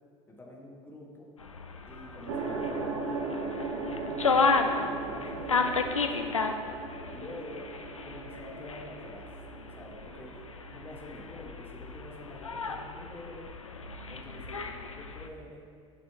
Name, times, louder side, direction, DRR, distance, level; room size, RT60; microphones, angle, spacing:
voice 1, 0.3-1.3 1.9-6.6 7.1-7.7 8.0-9.3 9.6-10.4 10.7-13.5 14.1-15.6, left 1 dB, 15° left, -2 dB, 1.5 m, -47 dB
sound 1, 1.4-15.3, left 4 dB, 90° left, 0.4 m, -33 dB
sound 2, 2.3-11.0, right 4 dB, 55° right, 1.0 m, -38 dB
10.0 x 6.0 x 2.9 m, 2.2 s
figure-of-eight pair, 70°, 16 cm